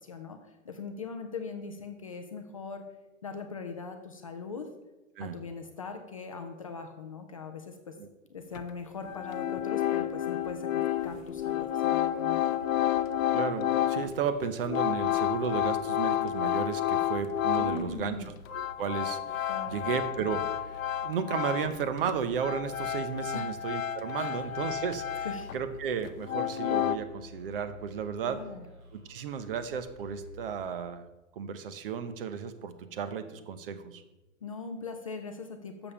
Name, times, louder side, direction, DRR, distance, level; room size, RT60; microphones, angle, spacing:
voice 1, 0.0-2.8 3.2-4.7 5.2-8.0 8.3-12.6 17.6-18.3 19.5-19.8 23.3-23.5 24.2-24.4 25.2-25.5 28.2-28.6 34.4-35.9, left 4 dB, 25° left, 5 dB, 0.4 m, -40 dB
sound 1, 8.5-8.6 9.0-18.0 18.3-21.8 22.1-25.7 26.0-27.0, left 12 dB, 70° left, 0.6 m, -30 dB
sound 2, 11.4-31.1, left 1 dB, 85° right, 3.2 m, -51 dB
voice 2, 13.3-18.2 18.5-25.3 25.5-28.4 28.9-31.0 31.4-34.0, right 7 dB, 40° right, 11 dB, 0.8 m, -34 dB
7.0 x 5.3 x 6.9 m, 1.0 s
hypercardioid pair, 155°, 41 cm